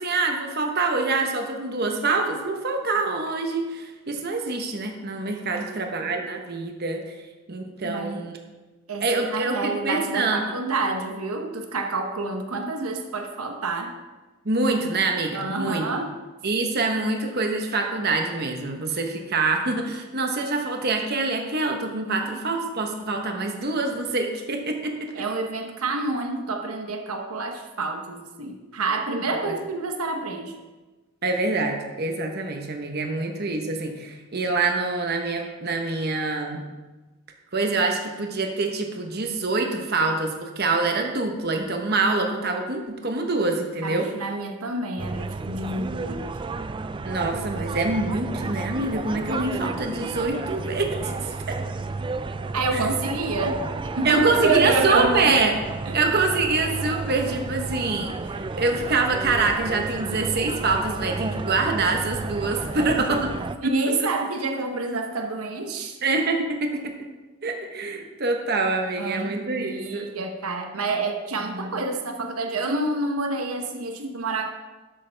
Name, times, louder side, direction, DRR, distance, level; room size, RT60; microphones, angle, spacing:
voice 1, 0.0-7.0 7.5-8.4 9.0-10.4 14.4-15.8 16.4-25.2 29.4-29.6 31.2-36.6 37.5-44.1 47.0-51.3 54.0-55.5 55.9-63.2 63.6-63.7 66.0-66.9 67.4-70.1, right 3 dB, 45° right, 3 dB, 1.1 m, -25 dB
voice 2, 5.5-6.1 7.8-8.3 8.9-14.0 15.3-16.1 22.2-22.4 25.1-30.6 43.8-46.3 52.5-55.4 55.9-56.0 62.7-62.9 63.6-66.0 69.0-74.5, right 3 dB, 85° right, 4 dB, 0.9 m, -28 dB
sound 1, 45.0-63.6, right 3 dB, 20° right, 0.3 m, -32 dB
12.0 x 8.3 x 3.4 m, 1.2 s
head